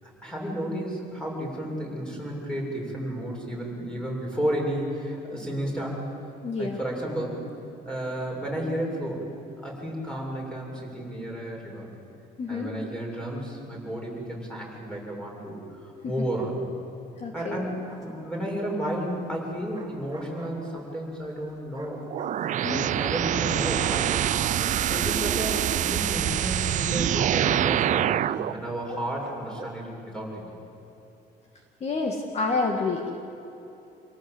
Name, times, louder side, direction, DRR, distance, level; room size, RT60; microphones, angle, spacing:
voice 1, 0.0-6.0 6.6-7.4 7.8-9.3 9.6-11.9 12.5-16.6 17.3-22.0 22.7-24.1 24.8-30.5, right 1 dB, 5° left, -2 dB, 7.0 m, -32 dB
voice 2, 6.4-6.8 12.4-12.7 17.2-17.6 22.6-22.8 31.8-33.1, left 3 dB, 40° left, 2 dB, 2.1 m, -28 dB
Bark, 17.6-18.5 19.4-21.0 21.7-29.9, right 3 dB, 25° right, 4.2 m, -46 dB
sound 1, 22.1-28.5, right 11 dB, 50° right, 0.5 m, -25 dB
28.0 x 18.0 x 8.1 m, 2.9 s
cardioid pair, 110°, 17 cm